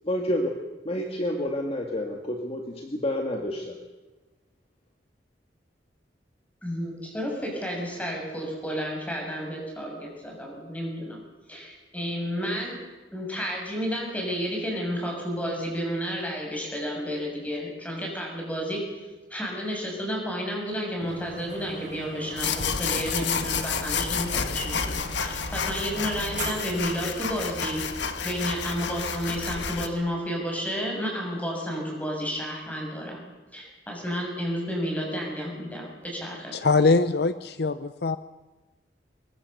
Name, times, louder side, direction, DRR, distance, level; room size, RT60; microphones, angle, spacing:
voice 1, 0.0-0.5 0.8-3.8, left 1 dB, 35° left, 2 dB, 2.1 m, -29 dB
voice 2, 6.6-11.2 11.5-12.8 13.1-18.8 19.3-27.8 28.2-33.2 33.5-36.6, equal, 10° left, 0 dB, 6.8 m, -31 dB
sound 1, 21.0-27.6, right 2 dB, 45° right, 6.9 m, -41 dB
sound 2, 22.4-29.9, left 6 dB, 85° left, 1.6 m, -30 dB
voice 3, 36.5-38.2, left 3 dB, 65° left, 13 dB, 0.7 m, -22 dB
24.0 x 21.5 x 6.8 m, 1.1 s
head